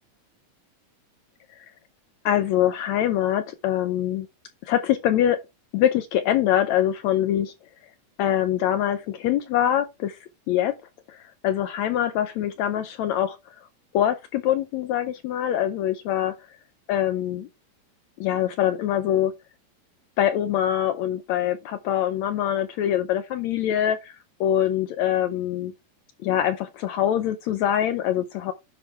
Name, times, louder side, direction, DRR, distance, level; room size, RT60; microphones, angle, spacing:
voice 1, 2.2-4.3 4.6-5.4 5.7-7.5 8.2-10.2 10.5-10.7 11.1-11.2 11.4-13.4 13.9-16.3 16.9-17.5 18.2-19.3 20.2-24.1 24.4-25.7 26.2-28.5, left 11 dB, 85° left, 1.6 m, -24 dB
10.5 x 6.0 x 3.4 m
omnidirectional pair, 4.1 m